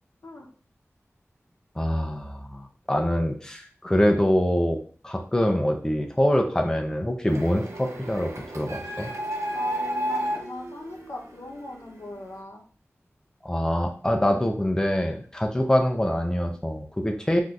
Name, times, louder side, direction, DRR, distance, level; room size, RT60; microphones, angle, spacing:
voice 1, 1.8-4.8 5.0-9.1 13.4-17.4, equal, 15° left, 3 dB, 0.5 m, -24 dB
Printer, 7.3-11.9, equal, 75° right, 0.6 m, -32 dB
voice 2, 9.5-12.6, left 2 dB, 75° left, 0 dB, 0.7 m, -40 dB
3.6 x 2.6 x 2.3 m, 0.42 s
wide cardioid pair, 70°, 5 cm